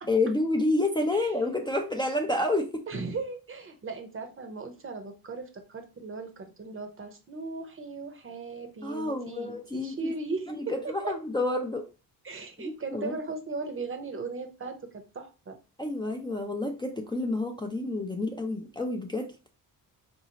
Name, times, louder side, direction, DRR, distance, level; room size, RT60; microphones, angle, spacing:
voice 1, 0.1-2.8 8.8-10.0 10.5-11.8 12.6-13.1 15.8-19.5, left 2 dB, 10° left, 3 dB, 0.5 m, -29 dB
voice 2, 2.9-11.2 12.2-15.6, right 3 dB, 35° right, 6 dB, 0.8 m, -37 dB
3.9 x 2.7 x 2.9 m, 0.31 s
cardioid pair, 90°, 37 cm